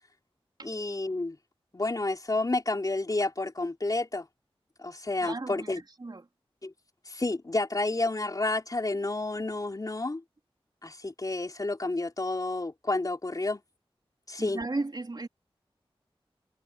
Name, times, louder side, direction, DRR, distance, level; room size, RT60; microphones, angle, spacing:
voice 1, 0.6-1.4 1.7-4.3 4.8-5.8 6.6-6.7 7.1-10.2 10.8-13.6 14.3-14.6, left 2 dB, 40° left, 4.2 m, -30 dB
voice 2, 5.2-6.2 14.4-15.3, right 2 dB, 45° right, 3.7 m, -35 dB
wide cardioid pair, 90°, 10 cm